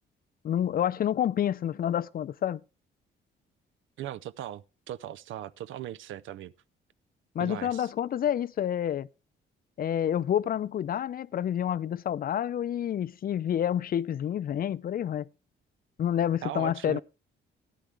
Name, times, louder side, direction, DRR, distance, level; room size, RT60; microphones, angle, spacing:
voice 1, 0.4-2.6 7.4-9.1 9.8-15.3 16.0-17.0, left 10 dB, 50° left, 0.5 m, -28 dB
voice 2, 4.0-6.5 7.4-7.9 16.4-17.0, right 12 dB, 75° right, 0.5 m, -38 dB
13.5 x 10.0 x 3.3 m
cardioid pair, 90°, 20 cm